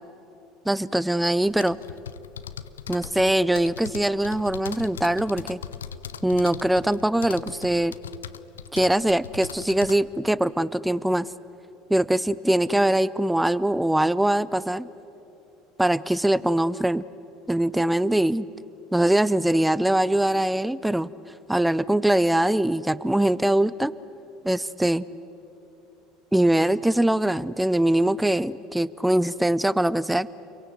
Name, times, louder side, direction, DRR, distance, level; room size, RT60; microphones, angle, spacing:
voice 1, 0.7-1.8 2.9-5.6 6.2-7.9 8.7-11.3 11.9-14.9 15.8-17.0 17.5-18.5 18.9-21.1 21.5-23.9 24.4-25.0 26.3-30.3, right 1 dB, 5° right, 19 dB, 0.6 m, -22 dB
sound 1, 1.5-10.0, left 7 dB, 75° left, 0.7 m, -40 dB
29.0 x 23.5 x 8.1 m, 2.9 s
figure-of-eight pair, 65°, 0 cm